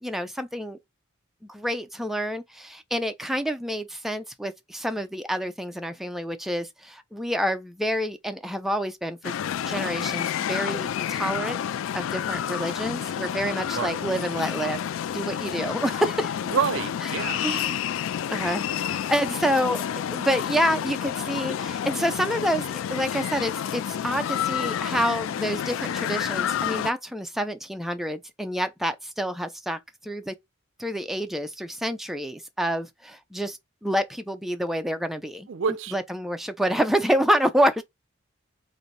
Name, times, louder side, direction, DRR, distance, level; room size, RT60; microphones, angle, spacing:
voice 1, 0.0-0.8 1.5-9.4 9.7-11.6 11.9-14.8 15.1-16.4 17.4-17.8 18.3-30.3 30.8-35.5 35.9-37.8, equal, ahead, 0.4 m, -28 dB
sound 1, 9.2-26.9, left 9 dB, 75° left, 0.3 m, -29 dB
voice 2, 13.7-14.0 16.5-17.6 35.5-35.9, right 6 dB, 70° right, 0.4 m, -28 dB
3.9 x 2.5 x 3.1 m
head